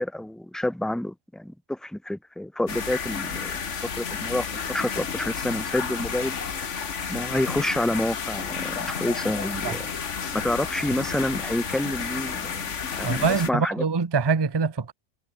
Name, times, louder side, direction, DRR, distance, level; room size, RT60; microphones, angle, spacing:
voice 1, 0.0-3.6 3.8-4.5 4.7-6.4 7.1-9.9 10.3-13.8, left 1 dB, ahead, 1.1 m, -28 dB
sound 1, 2.7-13.5, left 6 dB, 60° left, 1.7 m, -31 dB
voice 2, 13.0-14.9, right 5 dB, 25° right, 0.6 m, -24 dB
omnidirectional pair, 1.5 m